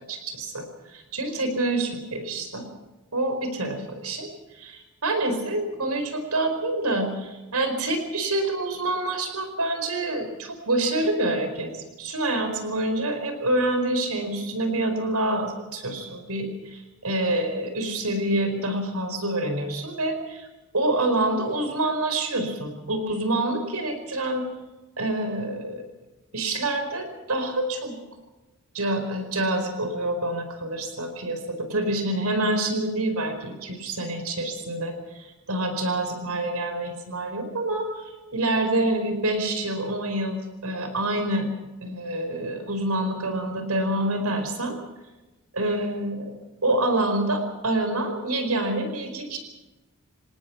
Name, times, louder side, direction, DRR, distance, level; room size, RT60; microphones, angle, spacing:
voice 1, 0.1-0.6 0.9-2.6 3.1-4.3 4.5-11.7 12.0-20.5 20.7-24.4 25.0-25.8 26.3-27.9 28.7-41.5 41.8-44.8 45.5-46.3 46.6-49.4, right 1 dB, 80° right, 7 dB, 4.9 m, -27 dB
26.5 x 18.5 x 6.0 m, 1.1 s
head